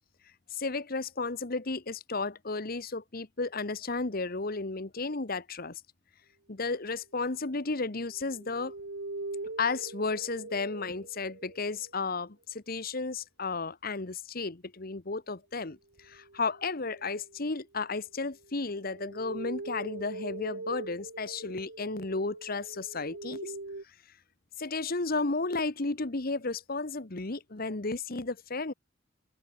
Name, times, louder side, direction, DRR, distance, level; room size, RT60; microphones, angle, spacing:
voice 1, 0.5-5.8 6.5-8.7 9.6-23.5 24.6-28.7, left 3 dB, 50° left, 1.2 m, -33 dB
sound 1, 7.8-11.9 16.0-17.5 18.3-23.8, right 2 dB, 65° right, 1.4 m, -43 dB
open air
head